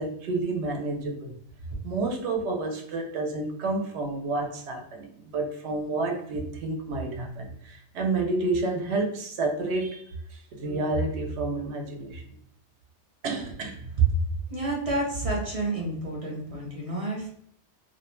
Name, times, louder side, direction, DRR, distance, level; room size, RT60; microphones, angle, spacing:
voice 1, 0.0-1.4 1.8-12.2 13.2-13.9, right 2 dB, 70° right, 2 dB, 0.9 m, -30 dB
voice 2, 14.5-17.3, right 2 dB, 40° right, -3 dB, 0.6 m, -30 dB
2.4 x 2.1 x 3.0 m, 0.67 s
omnidirectional pair, 1.2 m